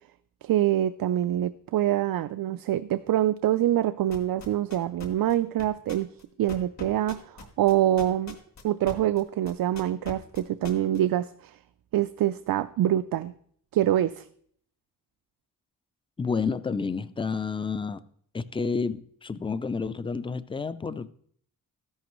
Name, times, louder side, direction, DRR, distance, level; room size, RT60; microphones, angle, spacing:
voice 1, 0.4-6.1 6.4-8.4 8.6-11.5 11.9-13.3 13.7-14.2, right 12 dB, 85° right, 0.5 m, -25 dB
sound 1, 4.1-9.2 9.5-11.0, left 4 dB, 55° left, 1.7 m, -41 dB
voice 2, 16.2-18.0 18.3-21.1, left 5 dB, 15° left, 0.4 m, -30 dB
13.5 x 11.0 x 3.1 m
wide cardioid pair, 160°, 34 cm